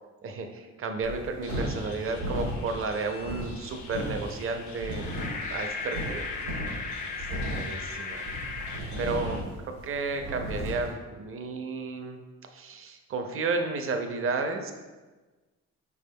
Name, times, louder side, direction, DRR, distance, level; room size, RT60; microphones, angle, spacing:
voice 1, 0.2-5.0 5.5-6.2 7.2-8.2 9.0-12.2 12.5-14.7, right 4 dB, 45° right, 5 dB, 0.5 m, -32 dB
sound 1, 1.0-10.9, equal, 80° right, 1.0 m, -36 dB
sound 2, 1.4-9.4, left 4 dB, 75° left, 0.7 m, -47 dB
sound 3, 4.8-8.8, left 4 dB, 30° left, 0.4 m, -36 dB
4.7 x 3.4 x 2.2 m, 1.2 s
cardioid pair, 90°, 30 cm